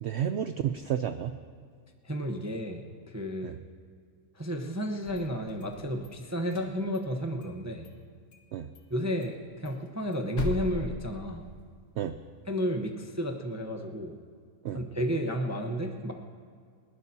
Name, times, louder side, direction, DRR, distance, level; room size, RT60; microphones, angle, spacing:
voice 1, 0.0-1.3 3.4-3.6 8.5-8.7 12.0-12.1 14.6-14.8, right 9 dB, 75° right, 9 dB, 0.6 m, -31 dB
voice 2, 2.0-3.6 4.3-7.9 8.9-11.5 12.5-14.2 14.7-16.1, equal, 15° right, 2 dB, 0.7 m, -32 dB
sound 1, 4.9-6.1 6.4-7.6 7.8-7.9 8.3-8.5 8.7-8.8 9.2-11.8, left 3 dB, 85° left, 1.9 m, -39 dB
29.5 x 12.0 x 2.8 m, 2.1 s
omnidirectional pair, 1.7 m